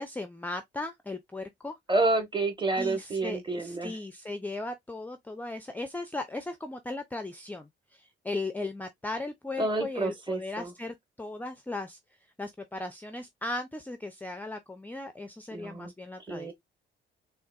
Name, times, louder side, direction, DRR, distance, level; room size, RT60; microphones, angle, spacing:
voice 1, 0.0-1.8 2.8-12.0 12.4-16.5, left 2 dB, 10° left, 0.4 m, -37 dB
voice 2, 1.9-3.9 9.6-10.7 15.5-15.9 16.3-16.5, right 2 dB, 25° right, 1.2 m, -29 dB
3.8 x 2.5 x 2.3 m
cardioid pair, 100°, 20 cm